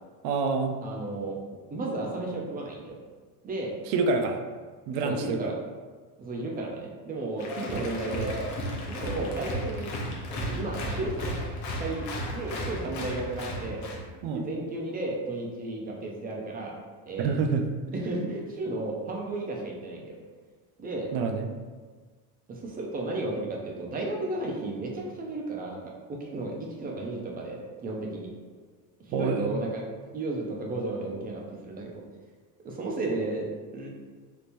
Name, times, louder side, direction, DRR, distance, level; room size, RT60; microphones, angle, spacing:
voice 1, 0.2-0.8 3.9-4.4 4.9-5.5 14.2-14.5 17.2-17.7 21.1-21.5 29.1-29.5, right 4 dB, 70° right, 5 dB, 0.5 m, -27 dB
voice 2, 0.8-1.4 1.7-3.0 3.4-3.7 5.0-5.5 6.2-8.4 8.7-9.9 10.3-11.3 11.8-13.8 14.3-16.7 17.0-17.4 17.9-20.2 20.8-21.1 22.5-25.8 26.1-28.3 29.1-29.8 30.1-31.9 32.6-33.9, right 2 dB, 20° right, -1 dB, 0.4 m, -33 dB
Applause, 7.4-14.1, equal, 40° left, 0.7 m, -34 dB
3.5 x 2.8 x 2.5 m, 1.5 s
cardioid pair, 130°, 45 cm